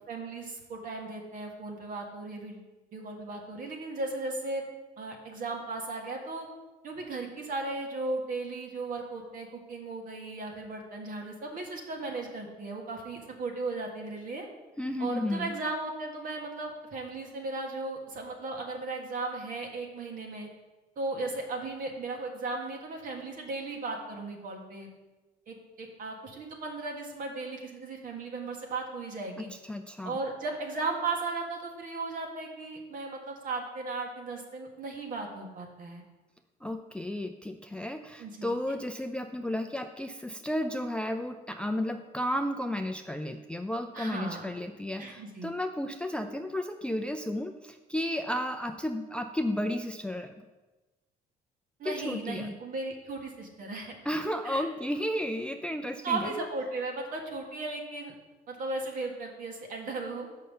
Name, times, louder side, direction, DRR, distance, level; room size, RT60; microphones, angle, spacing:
voice 1, 0.1-4.7 5.0-6.5 6.8-14.5 15.0-20.5 21.0-24.9 25.5-29.5 30.0-36.0 38.2-38.5 43.9-44.5 45.0-45.5 51.8-54.0 54.4-54.6 56.0-58.1 58.5-60.3, right 3 dB, 55° right, 2 dB, 1.6 m, -36 dB
voice 2, 14.8-15.5 29.4-30.2 36.6-50.3 51.8-52.5 54.1-56.3, left 1 dB, 5° left, 6 dB, 0.4 m, -33 dB
5.6 x 5.3 x 6.5 m, 1.1 s
cardioid pair, 110°, 17 cm